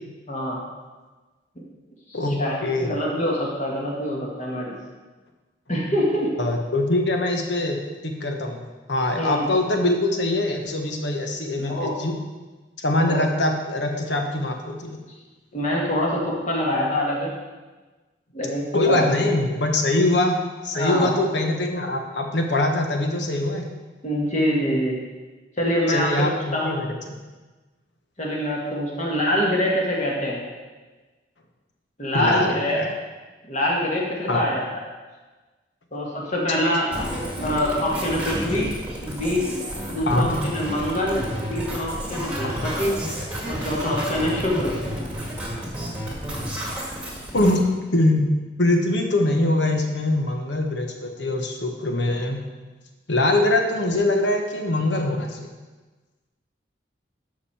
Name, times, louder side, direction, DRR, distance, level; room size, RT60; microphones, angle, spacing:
voice 1, 0.3-0.6 1.6-1.7 2.1-4.7 5.7-6.3 9.1-9.5 11.6-11.9 13.0-13.2 15.5-17.3 18.3-19.1 20.7-21.1 24.0-25.0 25.6-26.7 28.2-30.4 32.0-32.8 33.5-34.6 35.9-37.1 37.4-38.7 39.0-39.5 39.9-41.2 41.5-43.0 43.5-44.8, left 1 dB, 40° left, -3 dB, 2.0 m, -25 dB
voice 2, 2.1-3.0 6.4-8.6 8.9-12.2 12.8-15.0 18.7-20.4 20.6-23.7 25.9-27.1 32.1-32.9 34.3-34.5 40.1-40.4 42.5-42.7 47.3-47.6 47.9-52.4 53.1-55.5, left 1 dB, 70° left, 3 dB, 1.2 m, -23 dB
sound 1, 36.9-47.5, equal, 5° right, 1.7 m, -31 dB
12.5 x 5.3 x 4.4 m, 1.3 s
head